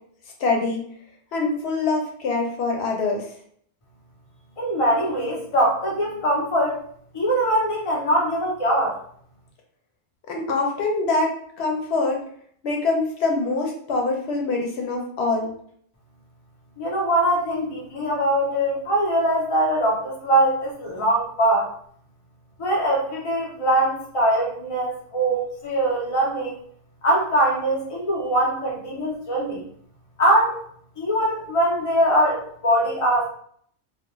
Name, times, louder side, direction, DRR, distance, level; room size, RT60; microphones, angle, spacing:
voice 1, 0.4-0.8 1.3-3.3 10.3-12.2 12.6-15.5, left 3 dB, 85° left, 1 dB, 0.9 m, -24 dB
voice 2, 4.6-6.8 7.1-9.0 16.8-21.7 22.6-26.6 27.0-29.6 30.2-30.5 31.0-33.3, right 1 dB, 35° left, -3 dB, 0.7 m, -22 dB
2.3 x 2.2 x 3.0 m, 0.62 s
omnidirectional pair, 1.1 m